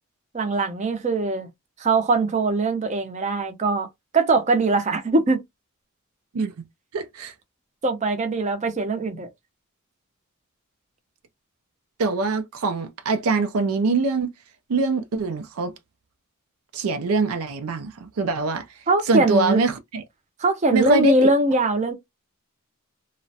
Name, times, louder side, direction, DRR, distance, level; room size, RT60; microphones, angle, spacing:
voice 1, 0.3-1.5 1.8-3.9 4.1-5.4 7.8-9.3 18.9-19.6 20.4-21.9, right 3 dB, 35° right, 0.5 m, -21 dB
voice 2, 6.3-6.6 6.9-7.3 12.0-14.3 14.7-15.7 16.7-18.6 19.1-20.0 20.7-21.1, right 3 dB, 85° right, 0.4 m, -23 dB
2.4 x 2.1 x 2.6 m
head